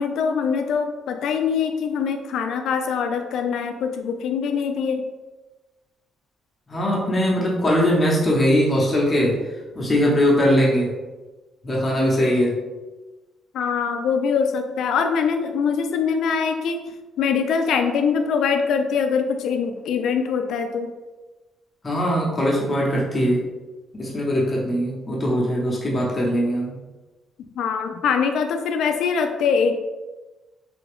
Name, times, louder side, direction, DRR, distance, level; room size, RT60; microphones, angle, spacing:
voice 1, 0.0-5.0 13.5-16.9 17.2-20.9 27.6-29.8, left 6 dB, 75° left, 6 dB, 0.4 m, -23 dB
voice 2, 6.7-11.0 11.6-12.6 21.8-23.5 23.9-26.8, equal, 30° left, -4 dB, 0.9 m, -21 dB
3.3 x 2.3 x 3.4 m, 1.2 s
cardioid pair, 90°, 0 cm